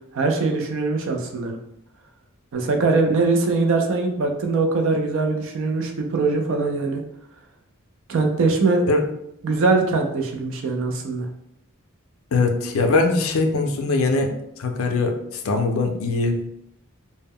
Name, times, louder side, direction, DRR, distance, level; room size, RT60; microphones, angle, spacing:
voice 1, 0.1-1.6 2.5-7.0 8.1-8.8 9.4-11.3, right 3 dB, 65° right, 4 dB, 0.4 m, -22 dB
voice 2, 12.3-16.4, left 3 dB, 65° left, 5 dB, 0.4 m, -21 dB
2.1 x 2.0 x 3.5 m, 0.78 s
head